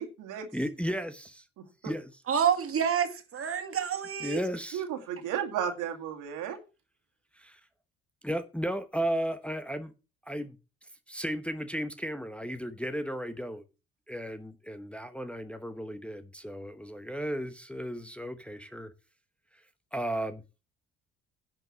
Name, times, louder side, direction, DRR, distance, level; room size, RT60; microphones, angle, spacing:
voice 1, 0.0-0.5 4.7-6.6, right 8 dB, 65° right, 5 dB, 2.2 m, -33 dB
voice 2, 0.5-1.4 1.8-2.1 4.2-4.8 7.4-7.6 8.2-9.9 10.3-10.5 11.1-13.6 14.1-18.9 19.9-20.4, equal, 5° left, 8 dB, 1.1 m, -34 dB
voice 3, 2.3-4.4, right 8 dB, 45° right, 8 dB, 2.3 m, -28 dB
10.5 x 6.0 x 6.0 m, 0.31 s
hypercardioid pair, 55°, 33 cm